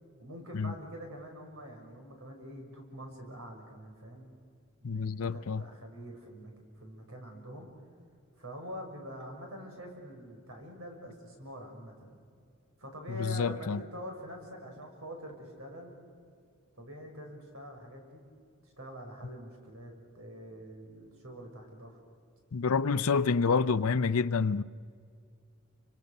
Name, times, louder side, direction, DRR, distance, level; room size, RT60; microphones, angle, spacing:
voice 1, 0.2-4.3 4.8-7.7 8.4-12.2 12.8-15.9 16.7-18.2 18.8-22.0, equal, 70° right, 6.1 m, -45 dB
voice 2, 4.8-5.6 13.2-13.8 22.5-24.6, left 5 dB, 80° left, 0.6 m, -28 dB
29.5 x 26.0 x 6.6 m
head